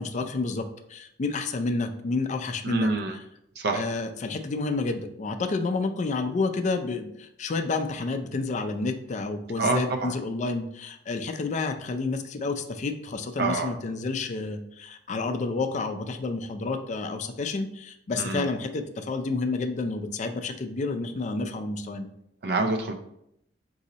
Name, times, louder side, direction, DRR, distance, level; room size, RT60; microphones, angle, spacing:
voice 1, 0.0-3.2 3.7-22.1, left 3 dB, 40° left, 7 dB, 0.4 m, -30 dB
voice 2, 2.6-3.1 3.6-3.9 9.6-10.1 13.4-13.7 18.2-18.4 22.4-22.9, right 3 dB, 55° right, 3 dB, 0.5 m, -26 dB
3.9 x 2.7 x 4.1 m, 0.77 s
head